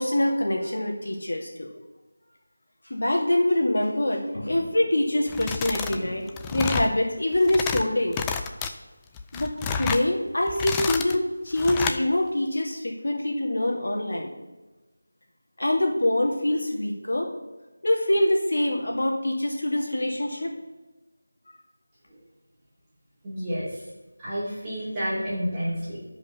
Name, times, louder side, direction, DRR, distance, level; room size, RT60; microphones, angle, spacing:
voice 1, 0.0-1.7 2.9-8.2 9.3-14.3 15.6-17.3 17.8-20.5, left 1 dB, 70° left, 0 dB, 2.2 m, -25 dB
sound 1, 5.3-6.0 6.3-6.9 7.3-7.8 8.1-8.7 9.2-10.1 10.5-11.2 11.6-12.0, left 6 dB, 10° left, 0.3 m, -29 dB
voice 2, 23.2-23.8 24.2-26.0, equal, 10° right, -11 dB, 2.7 m, -30 dB
11.5 x 5.2 x 5.6 m, 1.2 s
figure-of-eight pair, 175°, 0 cm